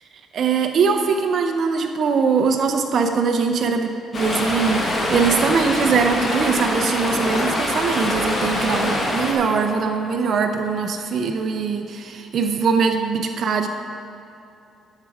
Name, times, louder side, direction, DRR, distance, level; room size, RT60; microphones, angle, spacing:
voice 1, 0.3-13.7, right 5 dB, 55° right, 4 dB, 0.6 m, -21 dB
Stream, 4.1-9.3, left 1 dB, 35° left, 1.6 m, -24 dB
10.5 x 6.6 x 4.8 m, 2.6 s
cardioid pair, 115°, 0 cm